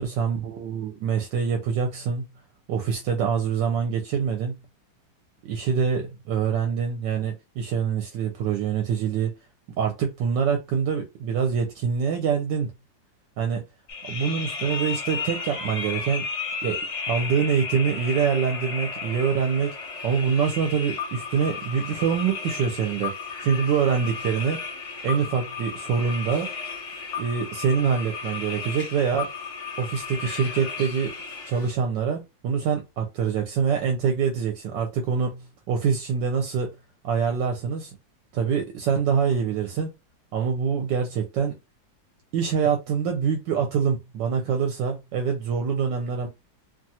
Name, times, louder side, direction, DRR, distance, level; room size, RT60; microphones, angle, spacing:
voice 1, 0.0-2.3 2.7-4.5 5.5-9.3 9.8-12.7 13.4-13.6 14.0-16.2 16.6-16.8 17.1-19.8 20.0-23.1 23.4-24.6 25.0-26.5 27.2-29.3 29.8-31.1 31.5-36.7 37.0-37.9 38.3-39.9 40.3-41.5 42.3-46.3, right 6 dB, 75° right, 1.2 m, -25 dB
sound 1, 13.9-31.7, left 5 dB, 60° left, 0.8 m, -34 dB
3.0 x 2.3 x 2.7 m
omnidirectional pair, 2.0 m